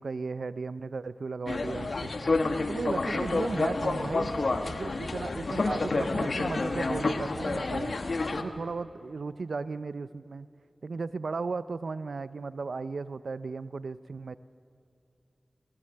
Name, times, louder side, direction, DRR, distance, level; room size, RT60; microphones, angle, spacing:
voice 1, 0.0-2.1 2.7-4.3 4.7-7.9 8.4-10.5 10.8-14.4, right 4 dB, 75° right, 15 dB, 0.4 m, -35 dB
sound 1, 1.5-8.4, left 3 dB, 65° left, 1.2 m, -29 dB
19.0 x 18.0 x 7.7 m, 2.5 s
wide cardioid pair, 55°, 0 cm